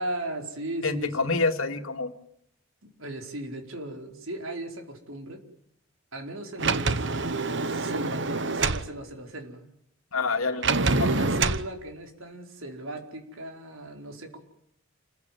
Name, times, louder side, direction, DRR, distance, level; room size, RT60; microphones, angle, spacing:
voice 1, 0.0-1.4 2.8-5.4 6.1-7.1 7.6-9.7 10.5-14.4, right 1 dB, 70° right, 4 dB, 4.8 m, -37 dB
voice 2, 0.8-2.1 10.1-10.7 11.0-11.1, left 3 dB, 75° left, 5 dB, 2.5 m, -27 dB
Sliding door, 6.6-8.9 10.6-11.7, right 3 dB, 55° right, 1.1 m, -26 dB
29.0 x 15.5 x 9.4 m, 0.75 s
head